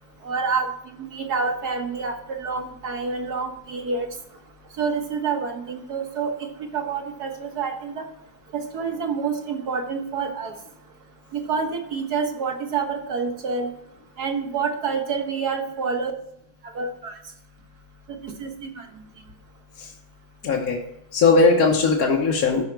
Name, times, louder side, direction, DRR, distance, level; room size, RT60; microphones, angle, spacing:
voice 1, 0.2-4.1 4.8-6.5 6.7-8.0 8.5-10.5 11.3-13.7 14.2-16.1 16.8-17.2 18.2-18.7, right 5 dB, 55° right, 4 dB, 1.8 m, -27 dB
voice 2, 20.4-20.8 21.1-22.7, left 4 dB, 55° left, -2 dB, 1.4 m, -19 dB
13.5 x 5.7 x 4.6 m, 0.77 s
omnidirectional pair, 2.1 m